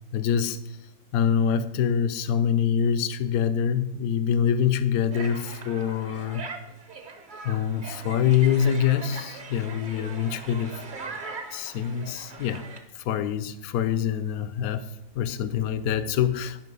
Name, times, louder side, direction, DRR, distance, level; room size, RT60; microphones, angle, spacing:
voice 1, 0.1-0.6 1.1-6.5 7.4-10.8 11.5-12.6 13.0-14.9 15.1-16.6, left 8 dB, 75° left, 0.8 m, -25 dB
sound 1, 5.1-12.8, right 4 dB, 35° right, 0.8 m, -40 dB
9.9 x 5.8 x 5.5 m
omnidirectional pair, 2.2 m